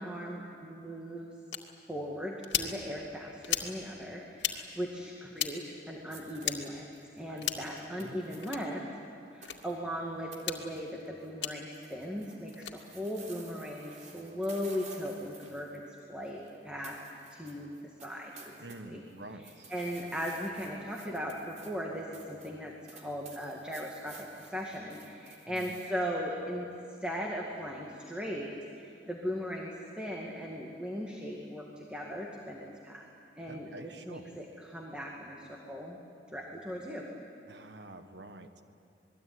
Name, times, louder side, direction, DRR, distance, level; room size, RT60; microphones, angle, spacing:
voice 1, 0.0-1.3 1.9-5.6 5.9-8.8 9.3-15.8 16.1-17.0 17.3-17.7 18.0-18.6 18.8-19.0 19.4-26.7 27.0-33.1 33.4-36.0 36.3-37.1, equal, 5° right, -1 dB, 2.2 m, -38 dB
sound 1, 1.5-1.6 2.4-2.7 3.4-3.7 4.4-4.6 5.3-5.5 6.4-6.6 7.4-7.7 8.4-8.6 9.4-9.6 10.4-10.6 11.4-11.5 12.5-12.7, left 10 dB, 80° left, 2.1 m, -33 dB
sound 2, 6.1-8.7 9.4-9.8 10.3-10.4 10.7-11.3 11.6-16.6 16.8-18.8 19.1-25.9, right 4 dB, 45° right, 3.7 m, -53 dB
voice 2, 7.3-8.1 18.6-19.7 25.5-25.7 33.5-34.3 37.5-38.6, right 2 dB, 75° right, 8 dB, 1.6 m, -48 dB
27.5 x 21.0 x 9.6 m, 2.5 s
head